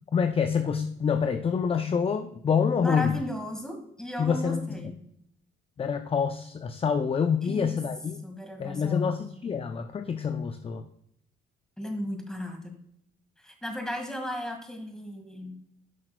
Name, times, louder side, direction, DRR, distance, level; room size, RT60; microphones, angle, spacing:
voice 1, 0.1-3.2 4.2-4.8 5.8-8.2 8.6-10.8, left 6 dB, 30° left, 8 dB, 0.5 m, -27 dB
voice 2, 2.7-5.0 7.4-7.8 8.2-9.2 11.8-12.7 13.4-15.6, left 1 dB, 5° left, 4 dB, 1.8 m, -35 dB
10.5 x 5.8 x 2.2 m, 0.74 s
cardioid pair, 90°, 20 cm